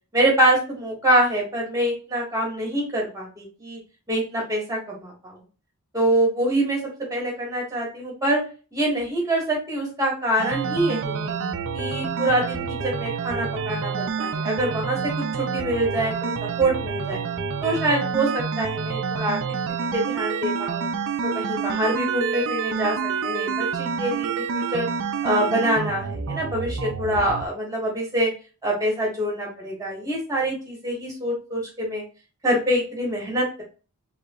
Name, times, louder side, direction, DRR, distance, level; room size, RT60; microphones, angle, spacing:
voice 1, 0.1-3.8 4.1-5.4 5.9-6.8 7.1-8.4 8.7-11.3 11.7-17.2 17.6-19.4 19.9-20.9 21.3-23.0 23.2-24.9 25.2-28.3 28.6-32.0 32.4-33.6, right 1 dB, 15° right, -2 dB, 1.8 m, -25 dB
sound 1, 10.4-27.5, right 5 dB, 60° right, 0.5 m, -28 dB
4.8 x 2.9 x 2.5 m, 0.35 s
head